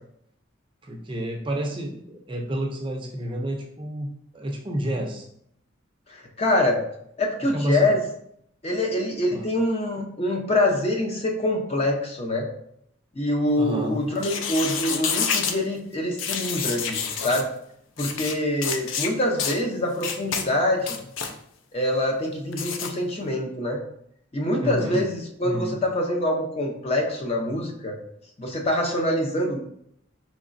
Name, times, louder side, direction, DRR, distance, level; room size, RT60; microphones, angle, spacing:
voice 1, 0.8-4.1 4.3-5.3 7.5-7.9 9.3-9.5 13.6-14.0 24.6-25.0 25.4-25.8, right 1 dB, 25° right, 1 dB, 0.5 m, -30 dB
voice 2, 6.1-6.8 7.2-8.0 8.6-12.5 13.2-17.5 18.0-21.0 21.7-23.8 24.3-28.0 28.4-29.6, left 1 dB, 30° left, 1 dB, 0.6 m, -25 dB
sound 1, 14.2-15.6 16.2-17.4 18.0-18.3 18.6-19.1 19.4-19.6 20.0-20.4 20.8-21.3 22.5-22.9, left 6 dB, 75° left, 0.4 m, -28 dB
4.9 x 3.1 x 2.5 m, 0.72 s
head